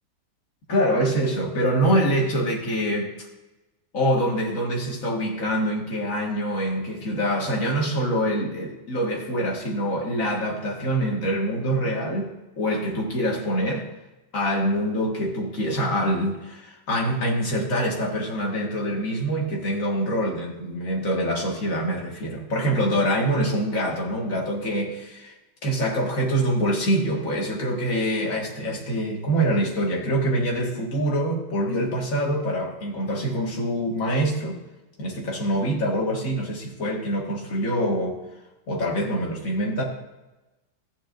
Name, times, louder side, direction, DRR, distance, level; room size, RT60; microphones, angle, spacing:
voice 1, 0.7-3.3 3.9-12.3 12.6-13.9 14.3-25.3 25.6-34.6 35.0-38.2 38.7-39.8, equal, 45° left, -1 dB, 2.1 m, -25 dB
14.0 x 9.2 x 2.6 m, 1.1 s
omnidirectional pair, 2.1 m